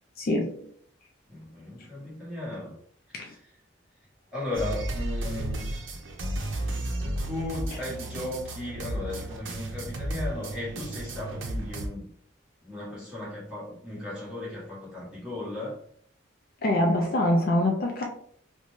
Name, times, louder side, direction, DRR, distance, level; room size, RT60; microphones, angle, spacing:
voice 1, 0.2-0.6 3.1-3.3 16.6-18.0, left 1 dB, 45° left, 1 dB, 0.4 m, -24 dB
voice 2, 1.3-2.7 3.1-3.3 4.3-5.7 7.2-12.1 12.6-15.8, left 1 dB, 5° right, -8 dB, 1.1 m, -36 dB
sound 1, 4.5-11.9, right 1 dB, 75° right, 0.6 m, -33 dB
2.6 x 2.2 x 3.1 m, 0.63 s
head